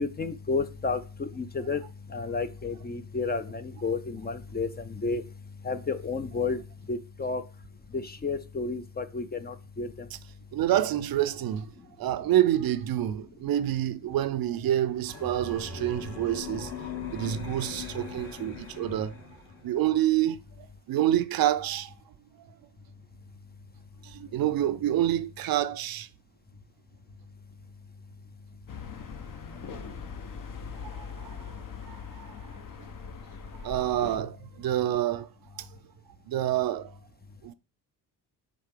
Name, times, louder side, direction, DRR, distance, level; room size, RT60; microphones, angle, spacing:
voice 1, 0.0-1.8 2.1-5.2 5.6-6.6 6.9-7.4 7.9-10.1, left 4 dB, 20° left, 0.6 m, -31 dB
voice 2, 10.5-11.7 12.0-16.7 17.1-19.1 19.6-20.4 20.9-21.9 24.0-26.1 29.8-29.9 30.8-31.4 31.9-32.3 33.5-35.7 36.3-36.9 37.4-37.5, right 12 dB, 55° right, 0.6 m, -27 dB
sound 1, 15.1-19.7, left 5 dB, 60° left, 2.8 m, -40 dB
sound 2, 28.7-34.2, left 6 dB, 45° left, 1.0 m, -41 dB
7.5 x 4.0 x 3.7 m
supercardioid pair, 75°, 44 cm